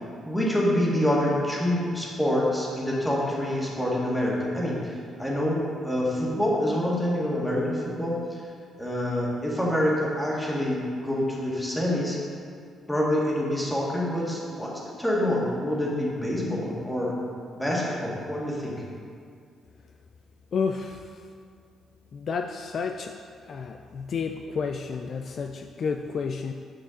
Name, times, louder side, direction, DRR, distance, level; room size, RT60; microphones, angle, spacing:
voice 1, 0.2-8.4 8.8-12.2 12.9-17.2 17.5-18.7, left 1 dB, 10° left, -4 dB, 1.8 m, -26 dB
voice 2, 20.5-21.0 22.1-23.2 23.5-26.5, left 5 dB, 55° left, 5 dB, 0.3 m, -31 dB
8.4 x 5.8 x 3.8 m, 2.2 s
cardioid pair, 90°, 0 cm